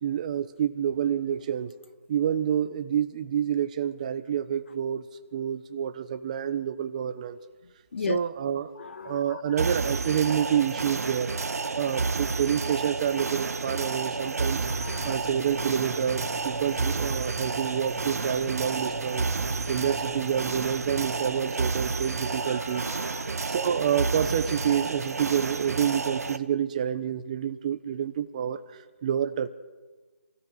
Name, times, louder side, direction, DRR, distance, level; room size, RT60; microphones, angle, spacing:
voice 1, 0.0-1.7 2.1-5.0 5.3-7.4 8.1-8.7 9.0-11.3 11.8-14.6 15.0-19.3 19.7-22.9 23.4-29.5, right 9 dB, 25° right, 1.1 m, -28 dB
voice 2, 8.8-9.4 14.7-15.2 22.5-23.4, left 5 dB, 50° left, 0.6 m, -36 dB
sound 1, 9.6-26.4, right 4 dB, 70° right, 1.4 m, -30 dB
sound 2, 14.6-21.4, equal, 5° right, 2.1 m, -43 dB
27.5 x 17.0 x 6.6 m
figure-of-eight pair, 165°, 9 cm